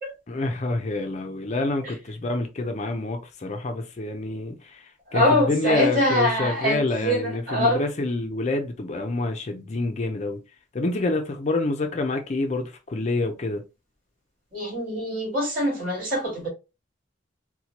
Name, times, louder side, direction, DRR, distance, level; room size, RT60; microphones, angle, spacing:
voice 1, 0.3-10.4 10.7-13.6, left 2 dB, 35° left, 0.4 m, -27 dB
voice 2, 5.1-7.8 14.5-16.5, left 1 dB, 45° right, 2.0 m, -24 dB
4.2 x 2.2 x 2.8 m
head